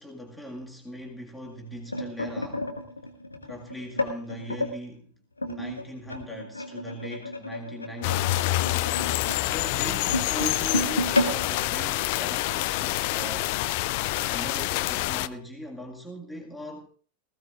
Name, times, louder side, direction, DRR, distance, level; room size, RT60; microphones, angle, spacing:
voice 1, 0.0-2.8 3.5-5.1 5.4-8.4 9.4-13.6 14.3-16.9, equal, 5° left, 2.0 m, -40 dB
sound 1, 1.4-4.7 5.4-12.7 13.1-13.3 13.5-13.8 14.6-14.7, left 1 dB, 80° left, 1.8 m, -32 dB
sound 2, 8.0-15.3, left 17 dB, 45° left, 0.5 m, -27 dB
19.5 x 16.0 x 2.5 m
figure-of-eight pair, 90°, 0 cm